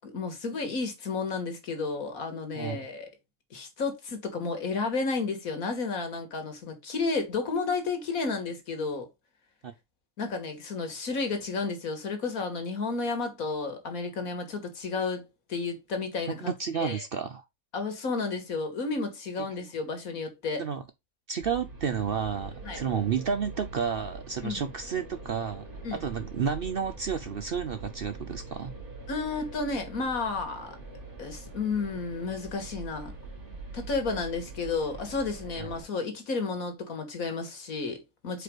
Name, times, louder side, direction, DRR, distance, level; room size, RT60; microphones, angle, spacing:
voice 1, 0.0-3.1 3.5-9.1 10.2-17.0 17.7-20.6 22.6-22.8 24.4-24.6 25.8-26.0 29.1-30.8 31.2-33.1 33.7-38.4, left 4 dB, 75° left, 2.0 m, -32 dB
voice 2, 16.3-17.4 20.6-20.8 21.3-28.7 35.6-35.7, right 7 dB, 55° right, 0.7 m, -31 dB
sound 1, 21.4-35.8, right 3 dB, 35° right, 2.0 m, -44 dB
5.1 x 4.6 x 4.6 m
omnidirectional pair, 1.5 m